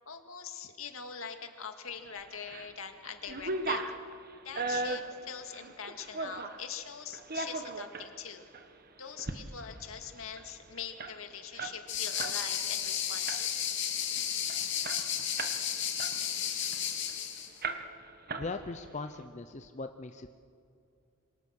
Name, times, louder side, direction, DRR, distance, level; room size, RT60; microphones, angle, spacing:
voice 1, 0.1-4.0 4.4-8.5 9.0-13.5, left 7 dB, 75° left, 6 dB, 2.1 m, -43 dB
sound 1, 2.2-2.7 3.0-6.6 7.1-8.1 8.5-8.7 9.1-9.4 9.7-9.8 10.1-12.4 12.7-12.9 13.3-13.7 14.2-14.3 14.5-15.6 16.0-17.2 17.6-18.0 18.3-18.9, right 3 dB, 45° right, 1.4 m, -37 dB
sound 2, 11.9-17.5, left 9 dB, 55° left, 2.7 m, -33 dB
voice 2, 18.4-20.3, left 3 dB, 35° left, 8 dB, 0.7 m, -39 dB
27.0 x 24.0 x 6.5 m, 2.4 s
head